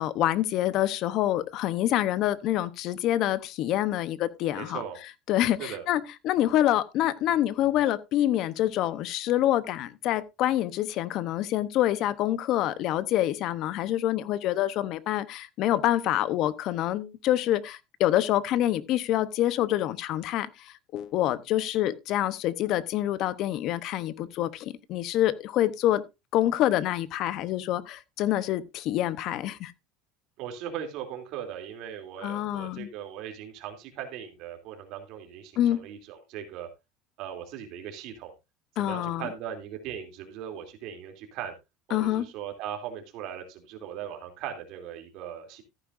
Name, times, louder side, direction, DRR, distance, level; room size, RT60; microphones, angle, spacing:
voice 1, 0.0-4.8 5.3-26.0 26.3-29.7 32.2-32.9 35.6-35.8 38.8-39.3 41.9-42.2, left 13 dB, 50° left, 0.9 m, -26 dB
voice 2, 4.5-5.0 5.6-5.8 30.4-36.7 37.2-38.3 38.8-41.5 41.9-45.6, right 9 dB, 55° right, 2.9 m, -39 dB
14.0 x 9.7 x 2.6 m
cardioid pair, 145°, 0 cm